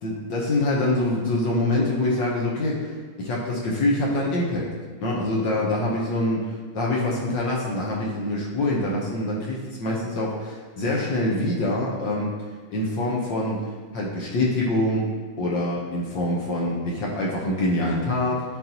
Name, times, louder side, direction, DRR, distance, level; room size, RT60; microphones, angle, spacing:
voice 1, 0.0-4.7 5.0-6.4 6.7-12.3 12.7-13.6 13.9-15.1 15.4-18.4, left 1 dB, 65° left, -4 dB, 1.6 m, -25 dB
10.5 x 3.9 x 2.9 m, 1.4 s
omnidirectional pair, 2.2 m